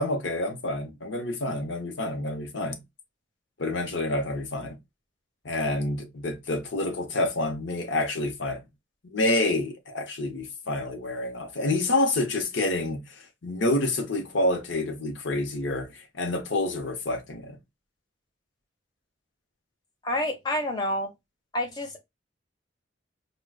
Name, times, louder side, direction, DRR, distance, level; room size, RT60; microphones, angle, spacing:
voice 1, 0.0-2.8 3.6-4.8 5.4-8.6 9.0-17.6, left 2 dB, 70° left, 0.8 m, -28 dB
voice 2, 20.0-21.1 21.5-22.0, left 1 dB, 20° left, 0.8 m, -28 dB
4.8 x 2.2 x 2.2 m
head